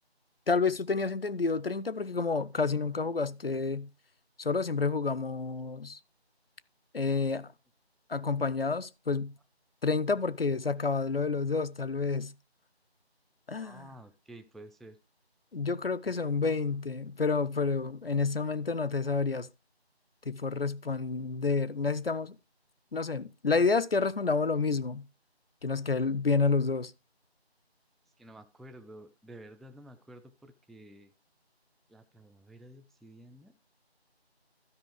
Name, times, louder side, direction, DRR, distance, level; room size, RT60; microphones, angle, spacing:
voice 1, 0.5-3.9 4.4-6.0 6.9-7.5 8.1-9.3 9.8-12.3 13.5-13.9 15.5-19.5 20.3-22.4 22.9-25.0 25.6-26.9, left 4 dB, 60° left, 0.6 m, -29 dB
voice 2, 13.6-15.0 28.2-31.1 31.9-33.5, right 1 dB, ahead, 0.4 m, -51 dB
12.5 x 5.4 x 4.8 m
figure-of-eight pair, 180°, 33 cm